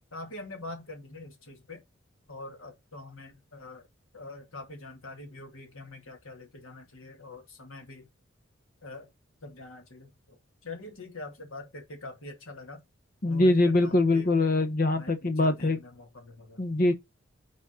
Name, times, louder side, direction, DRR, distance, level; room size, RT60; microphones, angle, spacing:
voice 1, 0.1-1.8 2.3-3.9 4.1-8.1 8.8-9.1 9.4-12.8 13.3-14.3 14.9-16.8, left 2 dB, 80° left, 2.4 m, -44 dB
voice 2, 13.2-15.8 16.6-16.9, left 2 dB, 45° left, 0.8 m, -23 dB
6.1 x 4.2 x 5.4 m
head